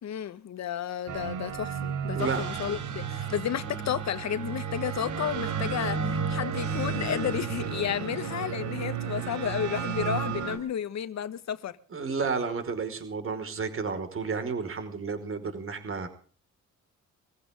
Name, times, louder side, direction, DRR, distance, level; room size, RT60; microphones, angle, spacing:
voice 1, 0.0-11.8, left 9 dB, 60° left, 1.7 m, -32 dB
sound 1, 1.1-10.6, right 7 dB, 80° right, 4.0 m, -32 dB
voice 2, 11.9-16.1, right 5 dB, 45° right, 5.2 m, -31 dB
24.0 x 15.5 x 3.8 m
cardioid pair, 90°, 30 cm